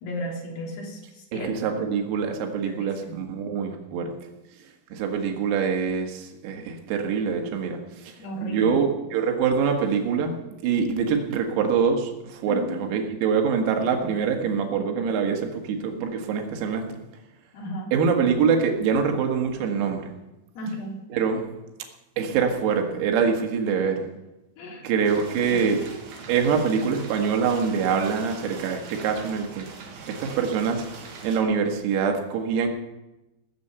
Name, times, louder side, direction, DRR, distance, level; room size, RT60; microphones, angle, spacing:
voice 1, 0.0-1.5 2.7-3.2 8.2-8.8 12.5-12.9 17.5-17.9 20.6-21.0 24.6-24.9 25.5-25.6, left 1 dB, 55° left, -1 dB, 4.6 m, -34 dB
voice 2, 1.3-4.1 4.9-7.8 8.0-8.1 8.4-10.4 10.6-17.0 17.9-20.1 21.1-21.5 22.2-24.1 24.8-25.8 26.3-29.7 30.1-30.8 31.2-32.7, right 6 dB, 90° right, 3 dB, 4.4 m, -24 dB
sound 1, 25.0-31.4, right 4 dB, 60° right, 3.2 m, -42 dB
18.5 x 7.0 x 8.0 m, 1.0 s
omnidirectional pair, 6.0 m